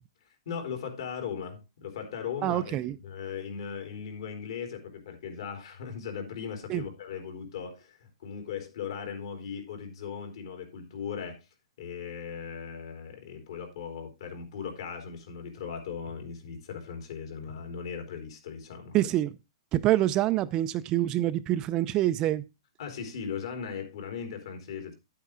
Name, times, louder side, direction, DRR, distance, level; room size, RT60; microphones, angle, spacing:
voice 1, 0.5-11.4 11.8-19.0 22.8-24.9, left 7 dB, 65° left, 3.7 m, -38 dB
voice 2, 2.4-3.0 6.7-6.8 18.9-19.3 19.7-22.4, right 14 dB, 25° right, 0.4 m, -26 dB
9.8 x 8.6 x 3.6 m
hypercardioid pair, 160°, 3 cm